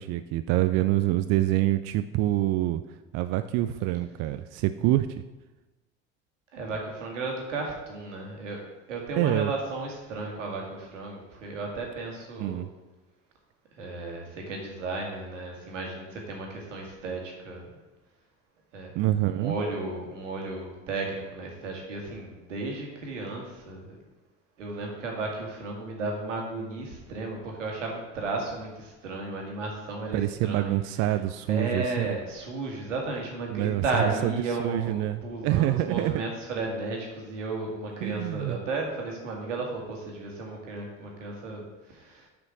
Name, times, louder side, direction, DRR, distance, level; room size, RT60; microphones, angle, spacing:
voice 1, 0.0-2.8 3.1-5.2 9.2-9.5 12.4-12.7 19.0-19.6 30.1-32.1 33.5-34.3 34.6-36.2 38.0-38.6, right 14 dB, 45° right, 11 dB, 0.4 m, -26 dB
voice 2, 6.5-8.6 8.9-12.7 13.8-17.8 18.7-18.9 19.3-24.0 24.6-30.7 31.5-42.3, right 3 dB, 80° right, 1 dB, 1.8 m, -34 dB
6.3 x 5.0 x 6.1 m, 1.1 s
figure-of-eight pair, 60°, 37 cm